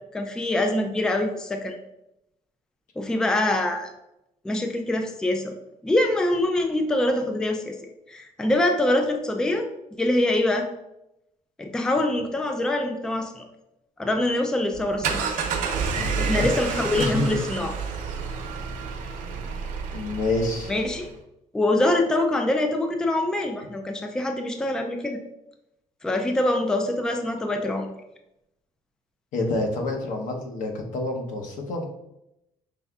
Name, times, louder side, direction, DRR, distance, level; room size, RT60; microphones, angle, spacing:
voice 1, 0.1-1.8 3.0-3.9 4.4-5.5 5.8-7.8 8.1-9.7 10.0-10.7 11.6-13.5 14.0-15.3 16.2-17.8 20.7-21.1 21.5-25.2 26.0-27.9, left 1 dB, 5° left, 4 dB, 0.3 m, -24 dB
sound 1, 14.7-21.1, right 5 dB, 90° right, 0.7 m, -29 dB
voice 2, 16.0-16.5 16.7-17.3 19.9-20.7 29.3-31.9, left 2 dB, 85° left, 2 dB, 0.9 m, -28 dB
5.4 x 3.4 x 2.3 m, 0.86 s
cardioid pair, 175°, 13 cm